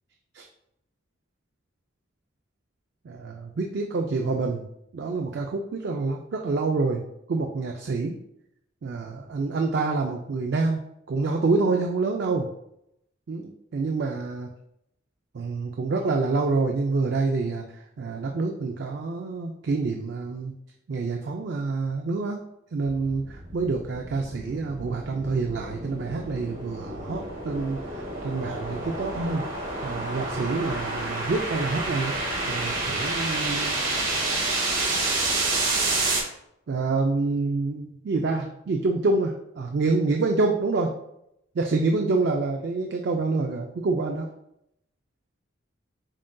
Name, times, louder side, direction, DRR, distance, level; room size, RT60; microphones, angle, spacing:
voice 1, 3.1-4.6 4.9-7.0 7.3-8.2 8.8-10.8 11.1-12.5 13.3-14.5 15.3-17.6 18.0-20.5 20.9-22.4 22.7-29.4 29.8-32.1 32.5-33.8 36.7-40.9 41.6-44.3, right 3 dB, 55° right, 3 dB, 0.3 m, -27 dB
sound 1, 22.9-36.2, right 2 dB, 80° right, 1.3 m, -29 dB
7.2 x 2.5 x 2.2 m, 0.79 s
head